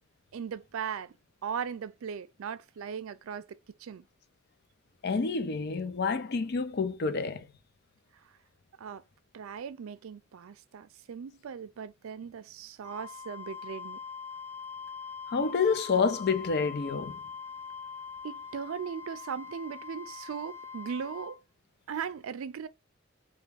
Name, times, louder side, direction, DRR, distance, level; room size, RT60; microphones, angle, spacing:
voice 1, 0.3-1.1 1.4-4.0 8.8-9.0 9.3-14.0 18.2-21.4 21.9-22.7, right 7 dB, 75° right, 0.4 m, -38 dB
voice 2, 5.0-7.5 15.3-17.2, left 5 dB, 50° left, 0.5 m, -28 dB
Wind instrument woodwind instrument, 12.8-21.4, left 6 dB, 10° left, 0.6 m, -43 dB
3.4 x 2.2 x 3.3 m
head